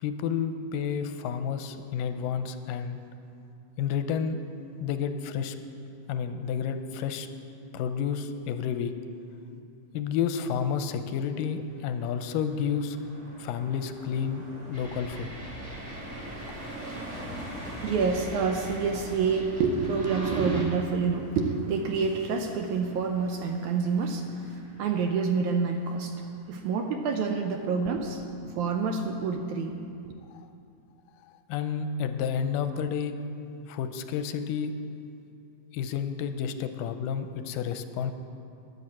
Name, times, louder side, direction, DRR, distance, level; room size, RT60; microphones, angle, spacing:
voice 1, 0.0-3.0 3.8-4.4 4.8-5.6 6.1-7.3 7.7-8.9 9.9-13.0 13.4-15.3 31.5-33.1 33.7-34.7 35.7-38.1, left 7 dB, 90° left, 9 dB, 2.3 m, -30 dB
Car passing by, 11.4-26.0 26.3-26.6, right 1 dB, 50° right, 3.6 m, -44 dB
sound 1, 14.7-20.6, equal, 20° right, 2.3 m, -43 dB
voice 2, 17.8-24.2 24.8-29.8, right 5 dB, 80° right, 4 dB, 1.9 m, -27 dB
10.5 x 9.4 x 7.3 m, 2.6 s
omnidirectional pair, 3.9 m